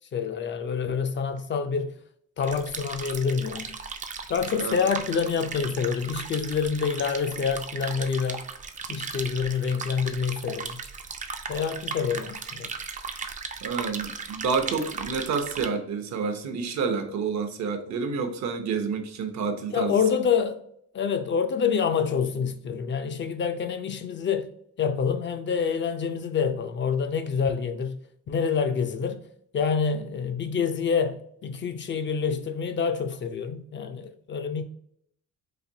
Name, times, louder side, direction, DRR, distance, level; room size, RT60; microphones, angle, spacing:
voice 1, 0.1-2.0 2.4-3.8 4.3-8.5 8.9-10.8 11.5-12.7 19.7-20.6 20.9-24.5 24.8-28.0 28.3-29.2 29.5-34.6, left 6 dB, 40° left, 0.4 m, -27 dB
sound 1, 2.4-15.7, right 5 dB, 25° right, 0.3 m, -37 dB
voice 2, 4.6-4.9 13.6-20.0, right 5 dB, 65° right, 0.7 m, -29 dB
4.2 x 2.6 x 2.6 m
cardioid pair, 105°, 29 cm